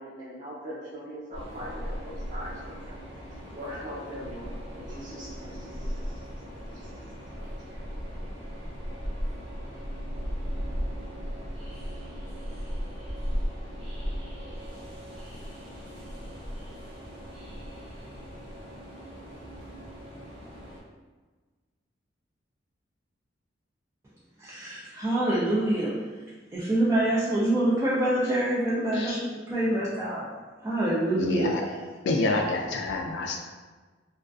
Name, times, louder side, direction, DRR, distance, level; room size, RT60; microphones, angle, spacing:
voice 1, 0.0-3.0 3.3-6.2 6.7-7.1 7.4-7.8, equal, 40° right, -6 dB, 0.7 m, -41 dB
Train, 1.3-20.8, equal, 60° right, 1.0 m, -37 dB
voice 2, 24.4-25.9 26.5-30.3 30.6-31.5, right 1 dB, 15° right, -9 dB, 0.3 m, -26 dB
voice 3, 31.2-31.7 32.0-33.4, left 2 dB, 65° left, 2 dB, 0.3 m, -28 dB
2.4 x 2.3 x 2.3 m, 1.4 s
head